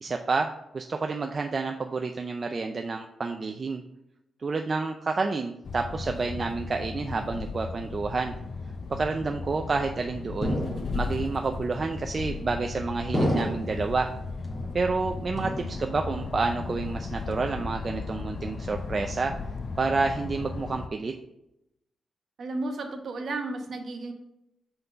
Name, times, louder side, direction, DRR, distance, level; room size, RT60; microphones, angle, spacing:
voice 1, 0.0-3.8 4.4-8.3 8.9-10.6 10.9-14.1 14.7-19.3 19.8-21.1, right 4 dB, 35° right, 4 dB, 0.4 m, -29 dB
sound 1, 5.6-20.9, left 4 dB, 45° left, 0.5 m, -36 dB
sound 2, 10.4-11.3 12.1-12.6 13.1-13.9 14.4-15.1 15.4-16.1 16.4-16.9 17.3-17.9, equal, 15° left, 1.6 m, -32 dB
voice 2, 22.4-24.1, right 2 dB, 55° right, 4 dB, 1.0 m, -33 dB
5.8 x 3.9 x 5.5 m, 0.85 s
wide cardioid pair, 135°, 0 cm